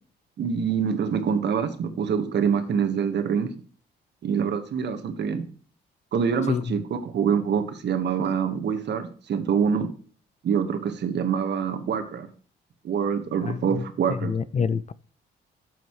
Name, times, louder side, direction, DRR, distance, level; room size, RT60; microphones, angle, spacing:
voice 1, 0.4-3.5 4.2-5.4 6.1-9.9 10.4-12.3 12.8-14.3, right 7 dB, 60° right, 1.6 m, -25 dB
voice 2, 13.4-14.9, left 6 dB, 35° left, 0.4 m, -28 dB
12.0 x 8.0 x 3.2 m
cardioid pair, 90°, 20 cm